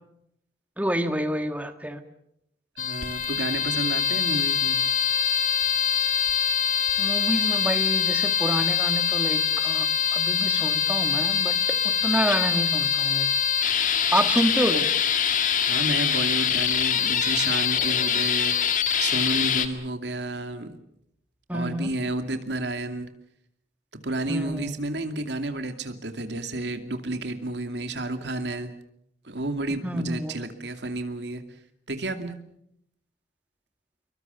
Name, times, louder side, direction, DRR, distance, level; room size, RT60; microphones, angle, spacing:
voice 1, 0.8-2.0 7.0-11.6 11.8-13.3 14.1-14.9 21.5-21.9 24.3-24.7 29.8-30.3, right 1 dB, 10° right, 8 dB, 1.6 m, -28 dB
sound 1, 2.8-19.7, left 8 dB, 45° left, 2.0 m, -24 dB
voice 2, 2.8-4.8 15.7-18.6 19.0-20.8 21.5-23.1 24.0-28.7 29.2-31.4 31.9-32.3, right 2 dB, 80° right, 7 dB, 2.5 m, -31 dB
sound 2, 17.7-20.2 20.5-20.6, left 1 dB, 25° left, 6.9 m, -48 dB
27.5 x 23.0 x 7.0 m, 0.76 s
head